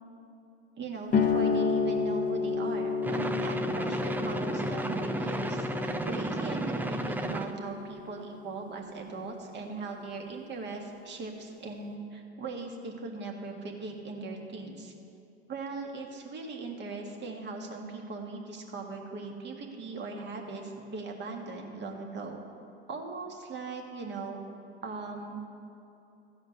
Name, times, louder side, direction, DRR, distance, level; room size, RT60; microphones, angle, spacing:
voice 1, 0.8-14.9 15.5-22.4 22.9-24.4 24.8-25.4, right 3 dB, 35° right, 2 dB, 1.8 m, -39 dB
sound 1, 1.1-8.3, left 5 dB, 25° left, 0.9 m, -31 dB
sound 2, 3.0-7.6, right 2 dB, 5° right, 0.5 m, -32 dB
14.0 x 5.1 x 8.0 m, 2.8 s
hypercardioid pair, 100°, 33 cm